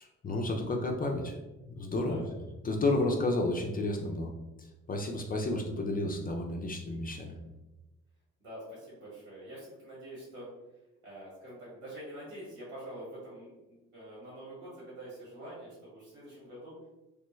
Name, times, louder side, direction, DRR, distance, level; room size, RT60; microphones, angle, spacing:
voice 1, 0.0-1.3 1.7-2.2 2.6-4.3 4.6-7.4, left 2 dB, 25° left, 2 dB, 0.4 m, -31 dB
voice 2, 8.4-10.5 11.0-16.7, right 1 dB, 80° right, -6 dB, 1.5 m, -46 dB
3.3 x 2.1 x 3.1 m, 1.1 s
supercardioid pair, 75°, 33 cm